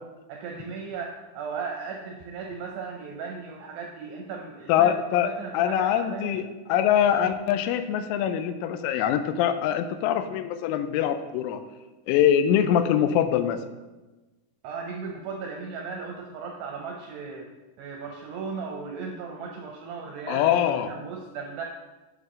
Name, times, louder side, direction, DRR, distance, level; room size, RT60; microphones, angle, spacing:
voice 1, 0.3-5.0 5.2-6.4 14.6-17.5 17.8-20.5 20.9-21.6, right 5 dB, 80° right, 1 dB, 2.4 m, -36 dB
voice 2, 4.7-11.6 12.1-13.6 20.3-20.9, left 9 dB, 90° left, 10 dB, 3.1 m, -23 dB
8.8 x 6.5 x 3.7 m, 1.2 s
omnidirectional pair, 5.6 m